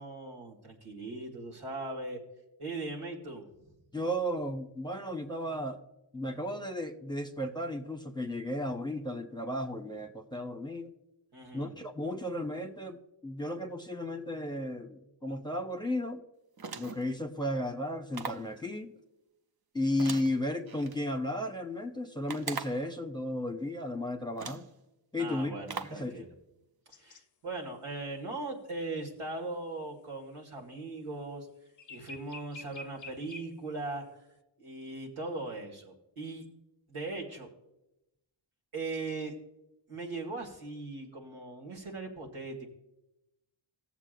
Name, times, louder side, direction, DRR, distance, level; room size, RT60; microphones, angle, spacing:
voice 1, 0.0-2.2 2.6-3.5 11.3-11.7 25.2-26.3 26.9-31.5 31.9-34.0 34.6-36.4 36.9-37.5 38.7-39.3 39.9-42.6, right 2 dB, 85° right, -1 dB, 2.0 m, -39 dB
voice 2, 3.9-5.8 6.1-10.9 11.5-16.2 16.8-18.9 19.7-24.7 25.1-25.5 25.9-26.2, left 1 dB, 10° left, 5 dB, 0.9 m, -34 dB
sound 1, 16.6-17.1 18.1-18.5 20.0-21.0 22.3-22.9 23.8-23.9 24.4-24.7 25.7-26.1, right 5 dB, 50° right, 0.6 m, -40 dB
sound 2, 26.9-27.2 31.8-33.6, left 2 dB, 40° left, 0.5 m, -47 dB
17.5 x 7.2 x 2.5 m, 0.91 s
wide cardioid pair, 50°, 49 cm